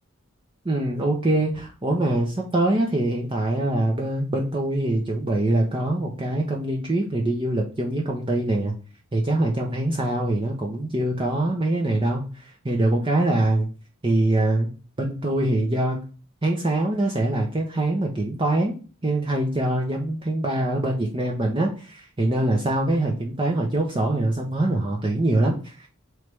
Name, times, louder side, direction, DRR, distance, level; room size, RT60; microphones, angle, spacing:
voice 1, 0.6-8.7 9.1-13.7 14.0-14.7 15.0-16.0 16.4-18.7 19.0-25.9, right 1 dB, 25° right, 0 dB, 0.6 m, -24 dB
3.2 x 3.1 x 4.6 m, 0.36 s
head